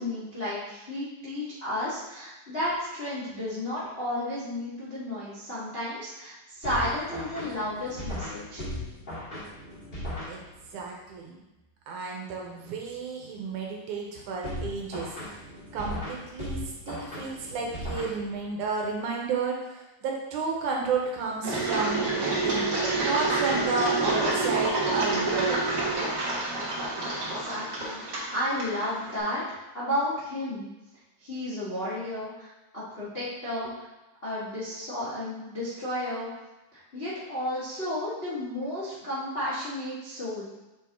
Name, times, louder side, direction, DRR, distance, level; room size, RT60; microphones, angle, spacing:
voice 1, 0.0-8.6 27.2-28.0 28.3-29.4 29.7-30.7 31.2-32.5 32.7-33.8 34.2-36.3 36.7-40.4, left 1 dB, 75° left, -10 dB, 0.5 m, -32 dB
sound 1, 6.6-10.8 14.4-18.6, left 1 dB, 25° left, 1.2 m, -37 dB
voice 2, 10.7-11.4 11.9-15.2 15.7-22.7 23.0-25.8, right 4 dB, 75° right, -1 dB, 2.0 m, -32 dB
Engine, 21.4-29.2, right 2 dB, 55° right, 1.1 m, -28 dB
6.7 x 4.6 x 3.5 m, 1.0 s
omnidirectional pair, 3.9 m